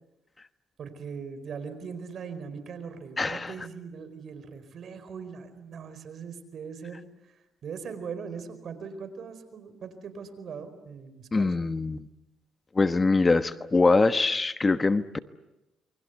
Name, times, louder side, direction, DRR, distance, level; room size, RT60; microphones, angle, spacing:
voice 1, 0.8-11.5, right 6 dB, 60° right, 11 dB, 4.6 m, -40 dB
voice 2, 3.2-3.5 11.3-12.0 12.7-15.2, left 3 dB, 25° left, 11 dB, 1.2 m, -23 dB
28.0 x 24.0 x 8.2 m, 0.96 s
cardioid pair, 90°, 0 cm